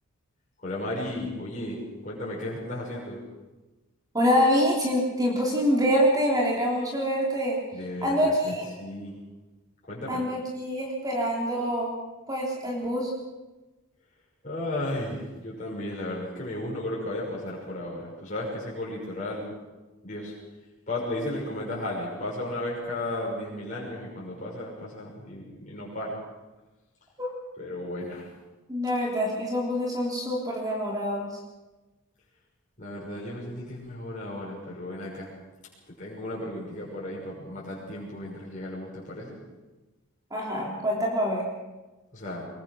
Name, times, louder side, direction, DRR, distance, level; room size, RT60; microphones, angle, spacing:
voice 1, 0.6-3.2 7.7-9.1 9.9-10.2 14.4-19.5 20.0-20.3 20.9-26.2 27.6-28.3 32.8-35.3 35.9-39.4 42.1-42.5, left 1 dB, 35° left, -5 dB, 6.2 m, -34 dB
voice 2, 4.1-7.6 8.0-8.7 10.1-11.9 12.3-13.1 27.2-27.3 28.7-31.3 40.3-41.4, equal, 15° right, -2 dB, 3.4 m, -25 dB
23.0 x 21.5 x 6.3 m, 1.1 s
head